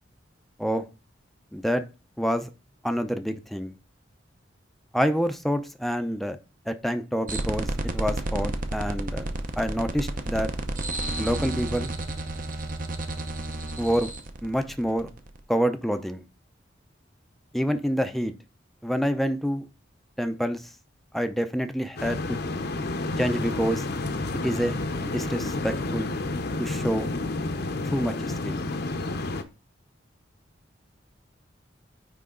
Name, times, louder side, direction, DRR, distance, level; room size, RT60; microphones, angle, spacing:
voice 1, 1.5-1.8 2.2-2.5 2.8-3.7 4.9-6.4 6.7-9.2 9.6-10.5 11.2-11.9 13.8-14.1 14.4-15.1 15.5-16.2 17.5-18.3 18.8-19.6 20.2-20.6 21.1-22.2 23.2-23.8 24.4-26.1 26.6-27.1 27.9-28.6, equal, ahead, 7 dB, 0.5 m, -27 dB
sound 1, 7.3-15.4, right 2 dB, 45° right, 0.8 m, -31 dB
sound 2, 22.0-29.4, left 2 dB, 55° left, 0.8 m, -30 dB
9.3 x 3.4 x 3.7 m, 0.31 s
head